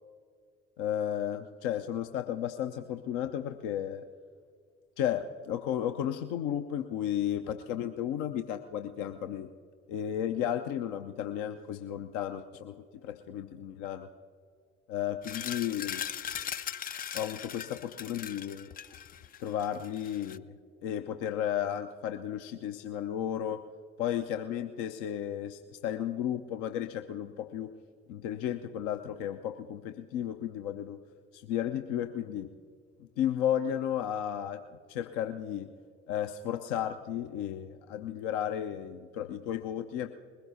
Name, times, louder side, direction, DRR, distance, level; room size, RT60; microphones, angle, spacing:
voice 1, 0.8-4.0 5.0-9.5 9.9-12.8 13.0-14.1 14.9-16.0 17.1-18.7 19.4-20.5 20.8-23.6 24.0-27.7 28.1-31.0 31.3-32.5 33.0-34.6 34.9-35.7 36.1-40.1, left 10 dB, 60° left, 7 dB, 0.7 m, -33 dB
sound 1, 15.2-20.4, left 9 dB, 25° left, 0.4 m, -39 dB
21.0 x 16.0 x 2.7 m, 2.1 s
figure-of-eight pair, 45°, 35 cm